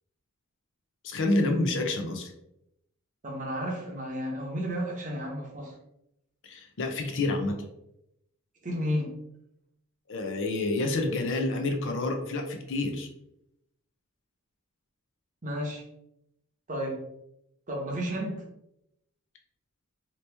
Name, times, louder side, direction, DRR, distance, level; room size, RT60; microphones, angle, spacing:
voice 1, 1.0-2.3 6.4-7.6 10.1-13.1, left 2 dB, 55° left, 4 dB, 0.6 m, -28 dB
voice 2, 3.2-5.7 8.6-9.1 15.4-15.8 16.7-17.0 17.7-18.4, equal, 35° right, -1 dB, 0.9 m, -32 dB
2.9 x 2.9 x 3.3 m, 0.80 s
head